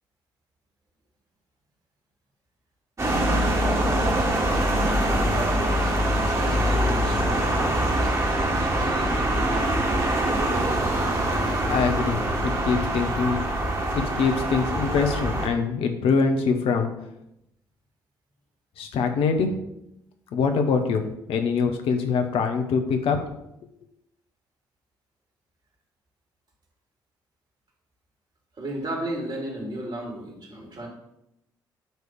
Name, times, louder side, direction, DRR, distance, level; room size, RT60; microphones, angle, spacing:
sound 1, 3.0-15.5, right 1 dB, 30° right, 2.4 m, -24 dB
voice 1, 5.3-8.1 8.6-10.8 13.2-13.6 28.5-30.9, right 1 dB, 50° right, -1 dB, 3.5 m, -35 dB
voice 2, 11.3-13.4 13.9-16.9 18.8-19.6 20.3-23.2, left 5 dB, 65° left, 5 dB, 1.0 m, -24 dB
9.0 x 3.3 x 6.7 m, 0.83 s
hypercardioid pair, 45°, 10 cm